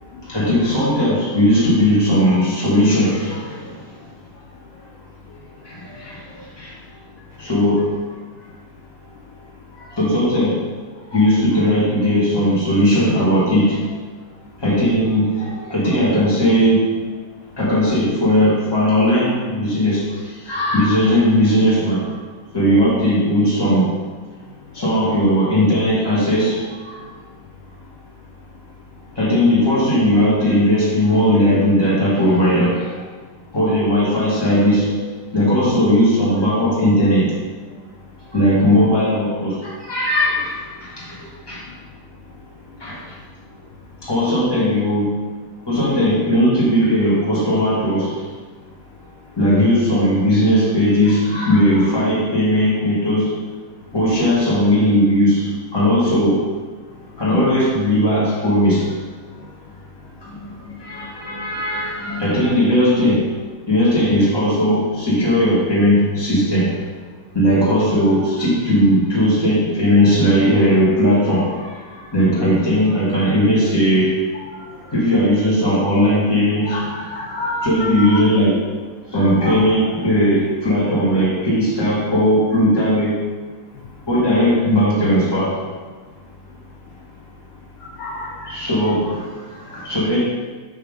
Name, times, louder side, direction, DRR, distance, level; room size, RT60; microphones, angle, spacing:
voice 1, 0.2-3.8 5.6-6.7 7.4-8.0 9.7-10.6 11.1-13.8 14.6-17.0 17.6-22.1 22.5-23.9 24.7-27.0 29.2-33.0 33.5-35.1 35.3-37.3 38.3-41.6 42.8-43.0 44.0-45.2 45.7-48.2 49.4-53.3 53.9-56.5 57.2-58.9 60.2-63.2 63.7-66.8 67.3-74.2 74.9-76.8 77.6-78.6 79.1-83.2 84.1-85.6 88.5-90.2, equal, 10° left, -8 dB, 2.3 m, -17 dB
voice 2, 76.7-78.2 79.2-79.6 88.0-88.5, left 2 dB, 75° left, -2 dB, 2.0 m, -28 dB
7.3 x 6.4 x 3.7 m, 1.4 s
omnidirectional pair, 2.4 m